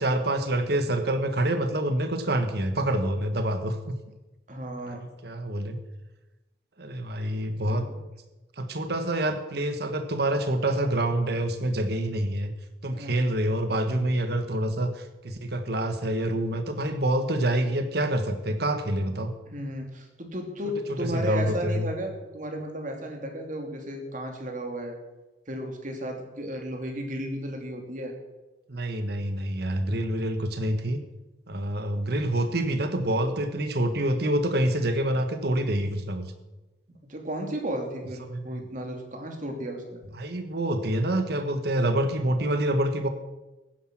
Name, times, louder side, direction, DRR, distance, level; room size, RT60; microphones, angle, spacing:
voice 1, 0.0-3.9 4.9-5.8 6.8-7.9 8.6-12.5 12.8-19.3 21.0-21.9 28.7-31.0 31.5-36.3 38.3-38.7 40.1-43.1, right 1 dB, 65° right, 8 dB, 1.5 m, -27 dB
voice 2, 4.5-5.1 7.5-8.0 12.9-13.3 19.5-24.9 25.5-28.1 37.1-40.0, equal, 45° right, 3 dB, 2.6 m, -34 dB
15.5 x 10.0 x 6.1 m, 1.1 s
head